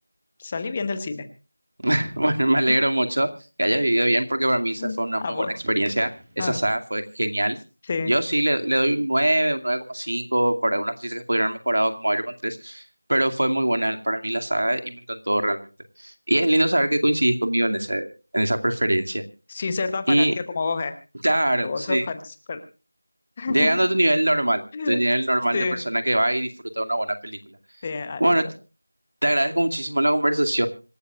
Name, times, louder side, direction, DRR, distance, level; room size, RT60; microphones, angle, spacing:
voice 1, 0.4-1.3 2.7-2.8 4.8-5.5 6.4-6.6 7.8-8.1 19.5-20.9 21.6-22.6 23.4-23.7 24.7-25.0 25.5-25.8 27.8-28.3, left 4 dB, 10° left, 10 dB, 0.9 m, -29 dB
sound 1, 1.8-2.6 5.6-6.7, right 1 dB, 20° right, 2.5 m, -43 dB
voice 2, 1.8-3.3 3.6-6.1 6.4-7.6 8.0-12.8 13.1-15.7 16.0-19.2 20.1-20.3 21.2-22.0 23.5-26.5 26.8-27.4 28.2-28.5 29.2-30.7, right 1 dB, 90° right, 7 dB, 2.3 m, -22 dB
26.0 x 13.5 x 2.4 m, 0.34 s
figure-of-eight pair, 180°, 0 cm